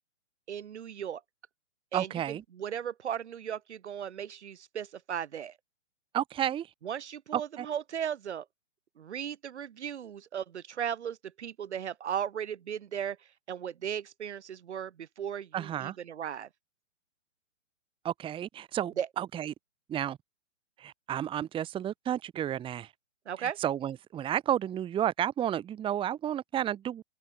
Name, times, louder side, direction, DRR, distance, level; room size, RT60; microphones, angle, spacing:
voice 1, 0.5-1.2 1.9-5.6 6.8-8.4 9.0-16.5 19.0-19.1 23.2-23.6, right 9 dB, 65° right, 3.3 m, -36 dB
voice 2, 1.9-2.4 6.1-6.7 7.3-7.6 15.5-16.0 18.0-19.5 19.9-20.2 20.8-22.9 23.4-27.0, right 10 dB, 15° right, 1.5 m, -32 dB
open air
hypercardioid pair, 135°, 37 cm